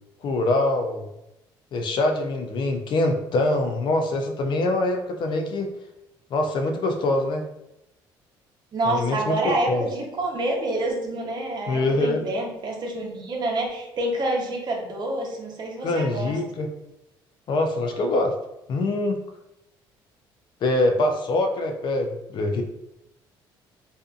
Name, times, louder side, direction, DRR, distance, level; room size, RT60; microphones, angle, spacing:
voice 1, 0.2-1.1 1.7-5.7 6.3-7.4 8.8-9.9 11.7-12.3 15.8-16.7 17.5-18.3 18.7-19.2 20.6-22.6, left 2 dB, 55° left, 4 dB, 0.4 m, -24 dB
voice 2, 8.7-16.4, right 1 dB, 50° right, 0 dB, 0.7 m, -27 dB
2.5 x 2.5 x 2.4 m, 0.89 s
supercardioid pair, 85°, 9 cm